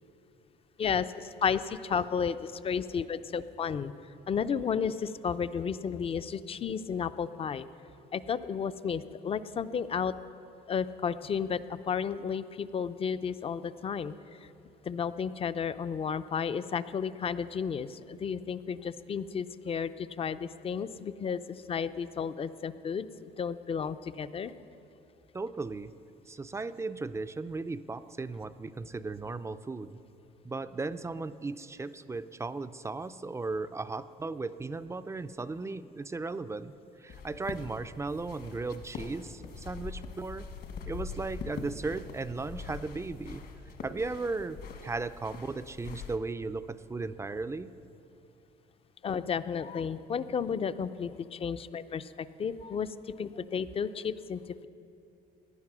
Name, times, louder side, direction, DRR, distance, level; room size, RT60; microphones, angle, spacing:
voice 1, 0.8-3.9 4.3-7.7 8.1-10.1 10.7-14.2 14.4-14.5 14.8-24.5 49.0-54.7, left 6 dB, 35° left, 13 dB, 0.5 m, -33 dB
voice 2, 25.3-25.9 26.3-30.0 30.4-36.7 37.0-40.5 40.9-43.4 43.8-47.7, right 3 dB, 15° right, 13 dB, 0.4 m, -36 dB
sound 1, 37.1-46.2, left 5 dB, 65° left, 1.6 m, -43 dB
18.0 x 10.5 x 6.1 m, 2.8 s
cardioid pair, 110°, 17 cm